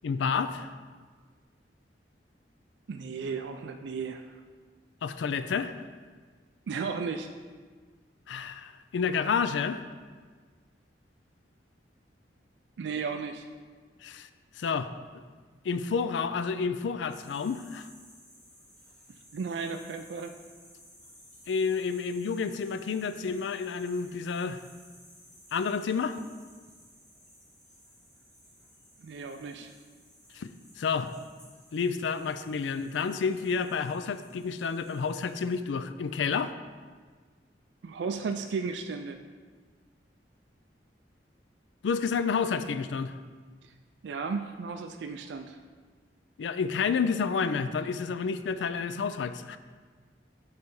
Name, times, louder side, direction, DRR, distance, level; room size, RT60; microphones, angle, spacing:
voice 1, 0.0-0.7 5.0-5.7 8.3-9.8 14.0-14.3 14.6-14.9 15.6-17.9 21.5-24.6 25.5-26.2 30.3-30.5 30.8-31.1 31.7-36.5 41.8-43.1 46.4-49.6, left 5 dB, 90° left, 12 dB, 0.4 m, -30 dB
voice 2, 2.9-4.4 6.7-7.3 12.8-13.5 19.3-20.3 29.0-29.7 37.8-39.2 44.0-45.6, right 5 dB, 75° right, 6 dB, 0.4 m, -34 dB
sound 1, 17.1-35.6, equal, 5° left, 2.1 m, -57 dB
8.1 x 3.3 x 5.3 m, 1.5 s
head